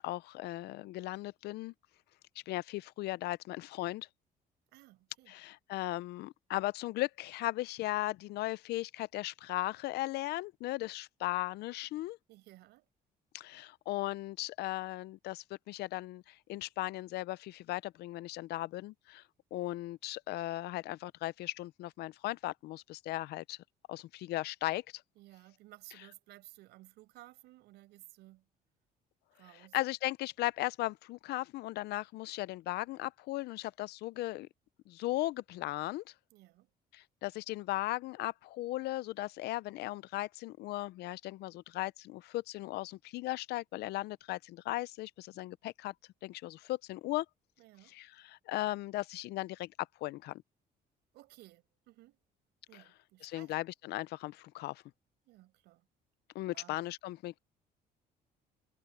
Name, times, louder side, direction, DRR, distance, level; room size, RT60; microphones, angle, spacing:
voice 1, 0.0-1.7 2.5-4.1 5.3-12.2 13.3-19.2 19.5-23.6 23.9-25.0 29.6-34.5 34.9-36.0 36.9-45.9 46.2-47.3 47.9-49.7 50.0-50.4 52.7-52.8 53.2-54.8 56.3-57.4, left 17 dB, 75° left, 0.5 m, -37 dB
voice 2, 4.7-5.3 12.3-12.8 25.2-28.5 29.3-29.8 36.3-36.7 47.6-48.0 51.1-52.2 52.7-53.5 55.3-55.8 56.5-56.8, right 17 dB, 85° right, 6.2 m, -57 dB
cardioid pair, 110°, 17 cm